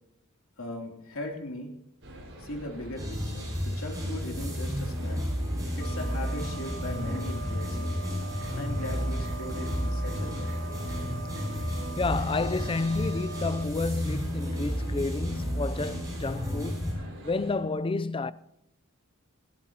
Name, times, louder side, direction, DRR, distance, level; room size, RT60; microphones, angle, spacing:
voice 1, 0.6-1.7 2.4-5.2 5.7-8.0 8.5-10.5, left 1 dB, 70° left, 3.2 m, -39 dB
sound 1, 2.0-17.6, equal, 60° right, 5.5 m, -45 dB
sound 2, 3.0-16.9, equal, 15° right, 6.1 m, -32 dB
sound 3, 5.8-13.7, right 3 dB, 80° right, 4.6 m, -42 dB
voice 2, 11.5-18.3, left 3 dB, 25° left, 0.5 m, -31 dB
26.5 x 11.5 x 3.0 m
head